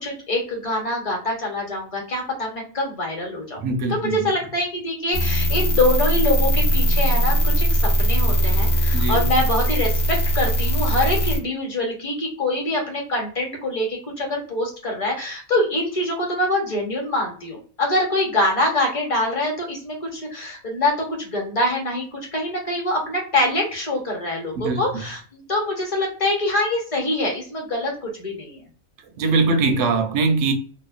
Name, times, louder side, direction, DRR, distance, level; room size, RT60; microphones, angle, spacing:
voice 1, 0.0-3.6 3.9-7.7 8.0-28.6, left 1 dB, 30° left, 0.9 m, -24 dB
voice 2, 3.6-4.3 8.9-9.4 24.6-25.0 29.2-30.5, right 3 dB, 80° right, 0.9 m, -22 dB
sound 1, 5.1-11.4, equal, 80° left, 1.0 m, -20 dB
2.8 x 2.2 x 2.4 m
omnidirectional pair, 1.2 m